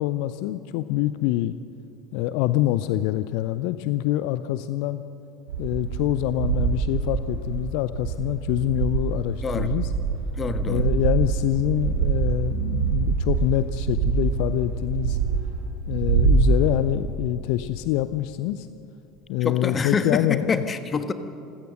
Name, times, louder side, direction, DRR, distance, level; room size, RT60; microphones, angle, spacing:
voice 1, 0.0-1.5 2.1-5.0 5.6-9.9 10.7-15.2 15.9-18.7 19.3-20.6, left 14 dB, 55° left, 13 dB, 0.6 m, -25 dB
sound 1, 5.5-7.6 7.9-17.0, right 5 dB, 75° right, 2.7 m, -25 dB
voice 2, 9.4-9.7 10.4-10.9 19.4-21.1, left 5 dB, 25° left, 10 dB, 1.4 m, -26 dB
27.0 x 16.0 x 6.5 m, 2.9 s
figure-of-eight pair, 70°, 0 cm